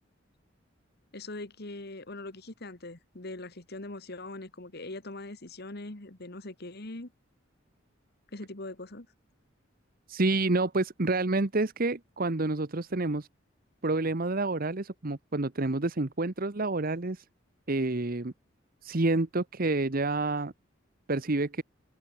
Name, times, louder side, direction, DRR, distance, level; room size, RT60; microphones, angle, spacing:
voice 1, 1.1-7.1 8.3-9.1, left 2 dB, 55° left, 2.0 m, -41 dB
voice 2, 10.1-13.3 13.8-17.2 17.7-18.3 18.8-20.5 21.1-21.6, right 2 dB, 45° right, 1.1 m, -28 dB
head